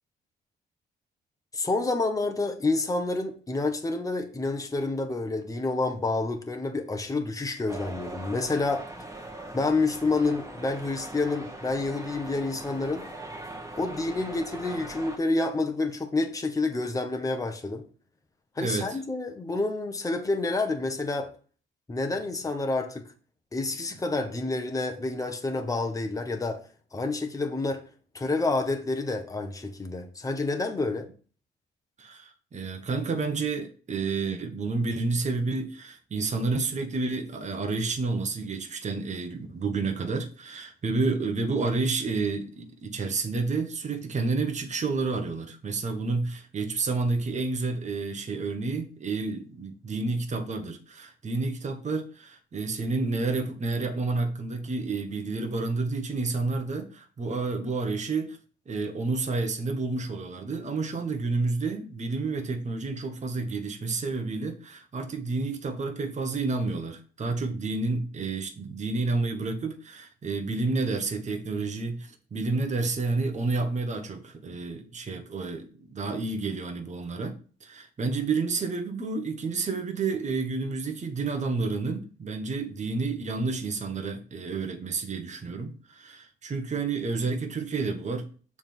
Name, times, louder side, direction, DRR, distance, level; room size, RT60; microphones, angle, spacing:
voice 1, 1.5-8.8 9.5-13.1 13.8-17.8 18.6-21.3 21.9-23.1 23.5-26.6 26.9-27.8 28.1-31.1, left 3 dB, 15° left, 1.1 m, -28 dB
sound 1, 7.7-15.2, right 2 dB, 15° right, 1.6 m, -41 dB
voice 2, 18.6-19.0 32.0-58.4 58.7-88.3, right 3 dB, 35° right, 1.2 m, -30 dB
7.0 x 3.6 x 6.0 m
cardioid pair, 90°, 20 cm